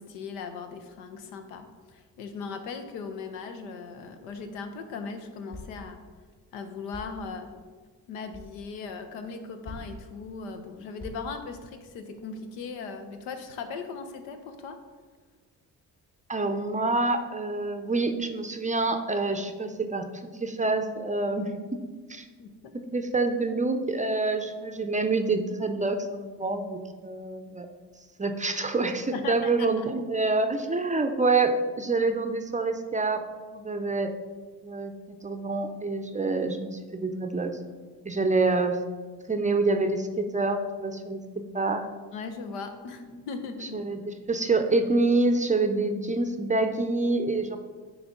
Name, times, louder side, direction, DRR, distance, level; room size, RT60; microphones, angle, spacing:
voice 1, 0.0-6.0 6.5-7.5 8.1-14.8 22.4-22.7 29.1-29.9 42.1-43.9, left 4 dB, 75° left, 7 dB, 0.7 m, -38 dB
sound 1, 4.3-4.6 5.5-5.9 6.9-7.3 8.3-8.5 9.6-10.1 11.0-11.4, left 2 dB, 40° left, 1.9 m, -43 dB
voice 2, 16.3-20.0 20.4-21.8 22.1-22.3 22.9-27.7 28.2-33.2 33.5-34.1 34.6-34.9 35.2-37.5 38.0-38.8 39.3-41.2 41.5-41.8 43.7-47.6, right 3 dB, 15° right, 6 dB, 0.5 m, -27 dB
9.1 x 3.1 x 3.7 m, 1.4 s
hypercardioid pair, 45°, 47 cm